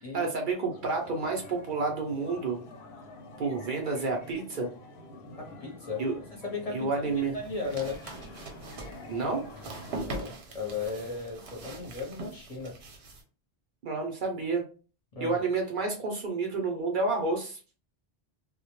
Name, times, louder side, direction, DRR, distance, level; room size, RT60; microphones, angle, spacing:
voice 1, 0.1-2.6 3.4-4.7 6.0-6.1 6.7-7.3 9.1-9.5 13.8-14.6 15.2-17.6, right 3 dB, 60° right, 2 dB, 0.7 m, -30 dB
sound 1, 0.7-10.0, left 1 dB, 90° left, 0.8 m, -47 dB
voice 2, 5.4-6.2 6.4-6.9 7.3-8.0 9.9-12.7 15.1-15.4, left 4 dB, 40° left, -2 dB, 0.7 m, -36 dB
sound 2, 7.1-13.2, right 2 dB, 85° right, 0.9 m, -42 dB
2.1 x 2.1 x 2.9 m, 0.36 s
omnidirectional pair, 1.1 m